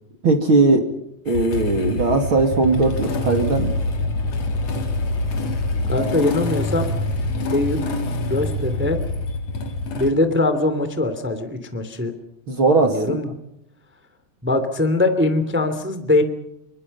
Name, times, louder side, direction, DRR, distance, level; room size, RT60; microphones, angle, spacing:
voice 1, 0.2-0.9 1.2-3.8 12.5-13.2, right 3 dB, 35° right, 5 dB, 2.6 m, -18 dB
Motorcycle / Engine starting, 1.3-10.1, left 2 dB, 45° left, 3.2 m, -25 dB
voice 2, 5.9-6.9 7.5-7.9 8.3-9.0 9.9-12.1 12.8-13.3 14.4-16.2, left 2 dB, 5° right, 9 dB, 1.7 m, -21 dB
27.5 x 24.0 x 5.5 m, 0.78 s
omnidirectional pair, 4.9 m